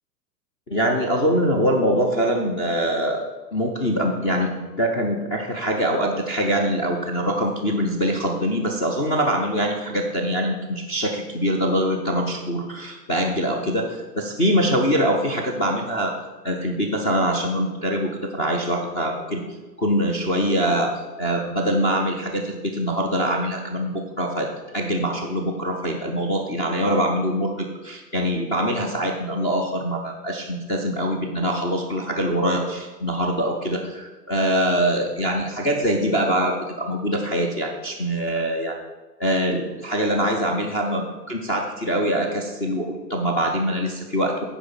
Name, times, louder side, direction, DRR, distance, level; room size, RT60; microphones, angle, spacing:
voice 1, 0.7-3.2 3.5-16.2 16.4-19.4 19.8-38.8 39.2-44.4, equal, 15° left, 1 dB, 0.4 m, -23 dB
9.8 x 4.9 x 6.9 m, 1.2 s
figure-of-eight pair, 105°, 49 cm